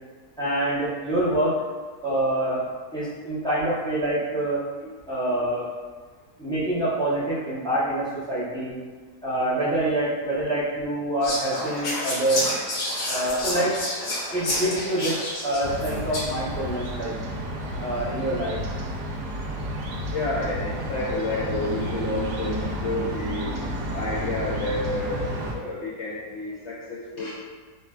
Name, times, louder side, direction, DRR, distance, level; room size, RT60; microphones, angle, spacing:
voice 1, 0.4-1.6 2.0-4.6 5.1-5.7 6.4-8.8 9.2-12.4 13.1-13.8 14.3-15.2 15.4-17.1 17.8-18.6, right 1 dB, 5° left, -11 dB, 0.3 m, -26 dB
Whispering, 11.2-16.5, left 1 dB, 75° left, 1.3 m, -29 dB
sound 1, 15.6-25.6, equal, 75° right, 1.1 m, -31 dB
voice 2, 20.1-23.5 23.9-27.3, left 2 dB, 90° left, -7 dB, 0.6 m, -30 dB
4.5 x 2.2 x 2.3 m, 1.4 s
omnidirectional pair, 1.7 m